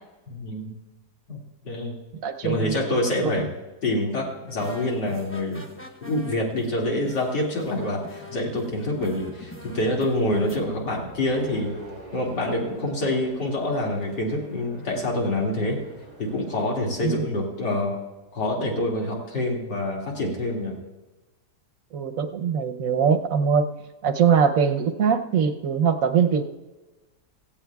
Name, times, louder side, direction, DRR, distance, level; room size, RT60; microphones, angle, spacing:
voice 1, 0.3-0.7 1.3-2.0 2.4-3.5 3.8-5.6 6.0-11.7 12.1-15.8 16.2-17.9 18.3-20.8, left 1 dB, 85° left, -2 dB, 2.9 m, -26 dB
voice 2, 2.2-2.7 3.2-3.3 17.0-17.2 21.9-23.7 24.0-26.4, right 7 dB, 60° right, 8 dB, 1.0 m, -22 dB
sound 1, 4.5-10.6, left 1 dB, 10° left, 0.6 m, -43 dB
sound 2, 8.6-16.4, right 2 dB, 35° left, 4.9 m, -46 dB
17.0 x 15.5 x 2.3 m, 1.1 s
omnidirectional pair, 1.8 m